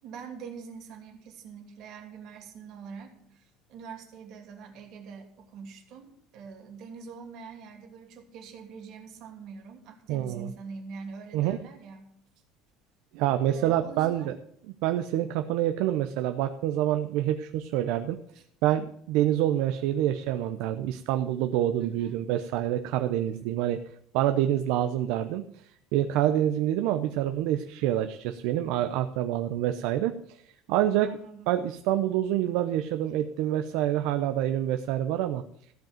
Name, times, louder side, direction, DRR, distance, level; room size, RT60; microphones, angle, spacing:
voice 1, 0.0-12.1 13.5-14.3 18.3-18.4 21.8-22.3 31.0-31.5, right 5 dB, 45° right, 2 dB, 2.8 m, -44 dB
voice 2, 10.1-10.5 11.3-11.6 13.1-14.3 14.8-18.2 18.6-23.8 24.1-25.4 25.9-30.4 30.7-31.1 31.5-35.4, right 12 dB, 65° right, 7 dB, 0.7 m, -27 dB
15.0 x 5.3 x 9.0 m, 0.70 s
cardioid pair, 165°, 0 cm